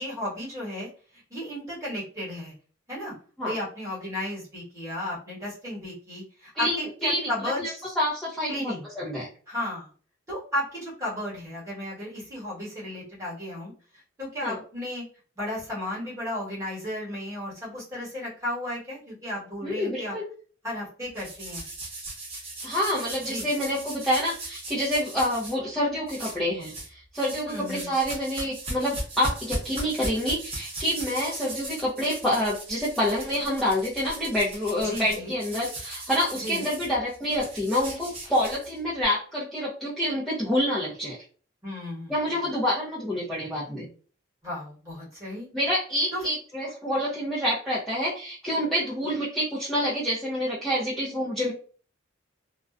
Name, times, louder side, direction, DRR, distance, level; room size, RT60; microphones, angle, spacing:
voice 1, 0.0-2.5 2.9-3.1 3.4-7.8 8.5-8.8 9.5-9.9 10.3-15.0 15.4-20.2 20.6-21.6 23.2-23.5 27.5-27.9 34.8-35.3 36.3-36.6 41.6-42.1 44.4-45.5 46.1-46.2, left 1 dB, 15° right, -7 dB, 1.2 m, -34 dB
voice 2, 6.5-9.3 14.4-14.6 19.6-20.3 22.6-41.2 42.1-43.9 45.5-51.5, equal, ahead, -9 dB, 0.5 m, -27 dB
sound 1, 21.2-25.5 26.1-26.9 27.1-39.0, right 1 dB, 30° right, 0.8 m, -38 dB
2.4 x 2.1 x 2.4 m, 0.40 s
head